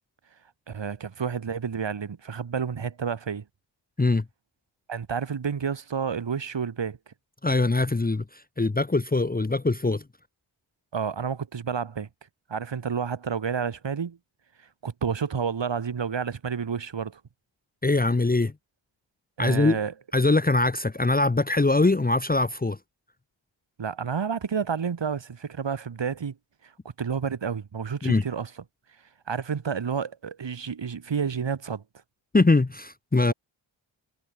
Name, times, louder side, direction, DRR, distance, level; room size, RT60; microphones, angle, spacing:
voice 1, 0.7-3.4 4.9-7.1 10.9-12.1 12.5-14.2 14.8-17.2 19.4-19.9 23.8-26.3 27.0-28.5 29.3-31.8, right 6 dB, 65° right, 3.0 m, -30 dB
voice 2, 7.4-10.0 17.8-18.5 19.4-19.8 20.1-22.8 28.0-28.2 32.3-33.3, left 2 dB, 20° left, 1.1 m, -22 dB
cardioid pair, 40°, 48 cm